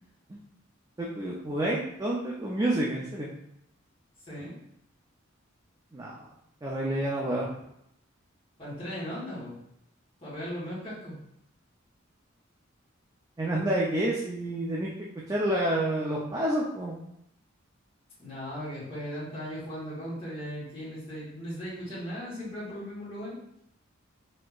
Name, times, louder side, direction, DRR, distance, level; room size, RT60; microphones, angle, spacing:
voice 1, 1.0-3.3 5.9-6.3 6.6-7.4 13.4-14.9 15.3-17.0, right 1 dB, 15° right, -4 dB, 0.4 m, -29 dB
voice 2, 8.6-9.6 10.2-11.1 18.2-23.4, equal, 30° left, -12 dB, 1.5 m, -37 dB
4.2 x 2.8 x 2.4 m, 0.77 s
head